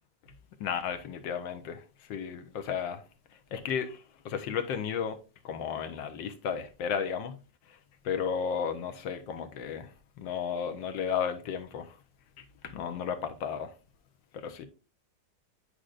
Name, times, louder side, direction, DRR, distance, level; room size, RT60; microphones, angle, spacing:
voice 1, 0.6-3.0 3.5-5.2 5.4-7.4 7.7-7.8 8.0-9.9 10.2-12.0 12.4-13.7 14.3-14.7, left 7 dB, 85° left, 1.6 m, -34 dB
9.0 x 4.9 x 2.4 m
omnidirectional pair, 2.0 m